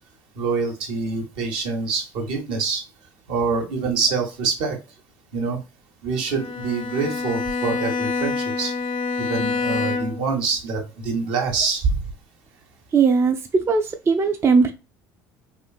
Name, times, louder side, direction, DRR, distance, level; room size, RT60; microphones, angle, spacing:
voice 1, 0.4-2.8 3.3-4.8 5.3-5.6 6.0-8.7 9.2-12.0, right 4 dB, 70° right, 0.9 m, -25 dB
Bowed string instrument, 6.3-10.4, left 4 dB, 70° left, 0.5 m, -26 dB
voice 2, 12.9-14.7, right 5 dB, 25° right, 0.3 m, -19 dB
3.0 x 2.4 x 2.3 m
hypercardioid pair, 70°, 10 cm